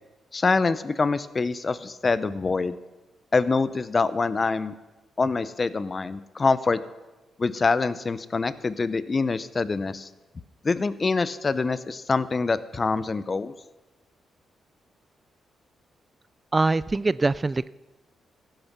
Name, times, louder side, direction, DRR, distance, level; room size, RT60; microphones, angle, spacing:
voice 1, 0.3-2.8 3.3-4.7 5.2-6.8 7.4-10.1 10.6-13.5, left 4 dB, 40° left, 16 dB, 0.8 m, -25 dB
voice 2, 16.5-17.7, right 3 dB, 30° right, 19 dB, 0.3 m, -23 dB
15.0 x 9.0 x 6.2 m, 1.1 s
hypercardioid pair, 45°, 0 cm